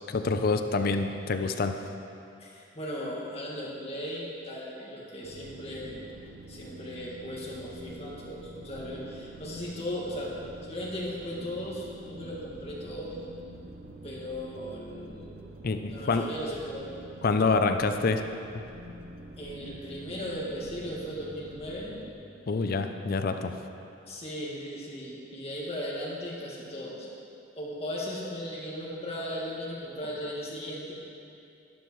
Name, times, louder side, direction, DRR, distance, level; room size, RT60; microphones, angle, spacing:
voice 1, 0.1-1.7 15.6-16.3 17.2-18.2 22.5-23.5, left 4 dB, 50° left, 7 dB, 0.5 m, -26 dB
voice 2, 2.4-6.0 6.5-10.3 10.6-13.2 14.0-15.5 15.9-17.0 19.4-22.0 24.1-27.1 27.6-30.9, equal, 30° left, -5 dB, 1.8 m, -37 dB
sound 1, 5.2-22.1, right 1 dB, 45° right, 0.7 m, -46 dB
12.0 x 11.5 x 3.1 m, 2.6 s
head